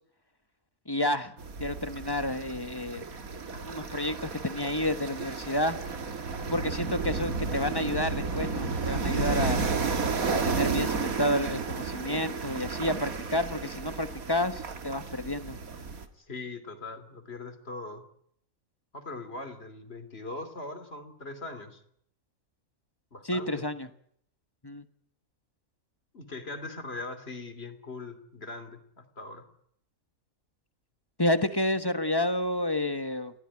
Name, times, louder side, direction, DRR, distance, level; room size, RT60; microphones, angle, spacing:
voice 1, 0.9-1.3 1.6-3.0 3.5-5.8 6.5-9.6 10.4-15.6 23.2-23.9 24.6-24.8 31.2-33.3, left 1 dB, 15° left, 10 dB, 1.3 m, -30 dB
sound 1, 1.4-16.0, right 4 dB, 80° right, 2.3 m, -32 dB
voice 2, 16.1-18.0 18.9-21.8 23.1-23.6 26.1-29.4, left 2 dB, 45° left, 8 dB, 3.1 m, -41 dB
29.0 x 16.5 x 9.9 m, 0.70 s
omnidirectional pair, 1.5 m